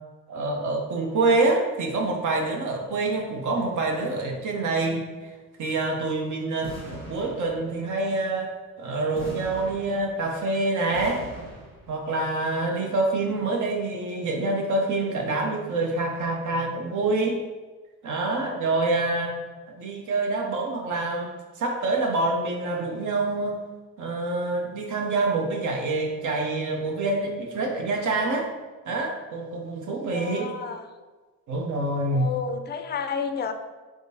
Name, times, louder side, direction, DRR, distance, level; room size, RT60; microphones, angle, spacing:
voice 1, 0.3-5.1 5.6-8.5 8.8-11.2 11.9-17.4 18.0-19.4 19.7-21.3 21.6-23.6 24.0-28.5 28.9-30.5 31.5-32.3, right 2 dB, 60° right, 1 dB, 0.8 m, -26 dB
sound 1, 6.6-7.9 9.1-10.4 10.9-12.0, equal, 80° right, 1.2 m, -42 dB
voice 2, 30.1-30.9 32.1-33.5, left 5 dB, 30° left, 8 dB, 0.4 m, -31 dB
3.6 x 3.5 x 2.7 m, 1.3 s
supercardioid pair, 70°, 34 cm